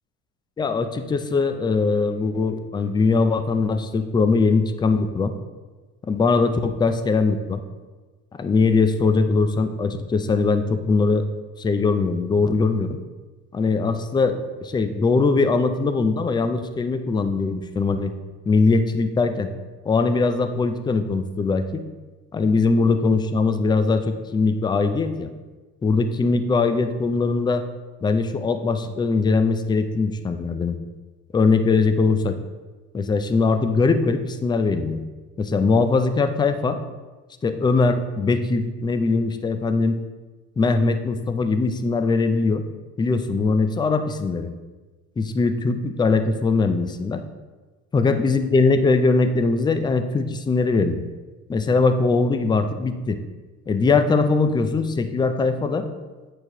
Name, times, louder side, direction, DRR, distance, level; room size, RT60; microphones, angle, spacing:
voice 1, 0.6-5.3 6.1-7.6 8.4-11.2 11.6-13.0 13.5-18.1 18.5-19.5 19.9-21.8 22.3-25.3 25.8-27.6 28.0-30.8 31.3-32.3 32.9-35.0 35.4-36.8 37.4-40.0 40.6-42.6 43.0-44.5 45.2-47.2 47.9-51.0 51.5-53.2 53.7-55.9, left 4 dB, 15° left, 9 dB, 0.3 m, -21 dB
8.0 x 4.6 x 2.9 m, 1.3 s
cardioid pair, 105°, 34 cm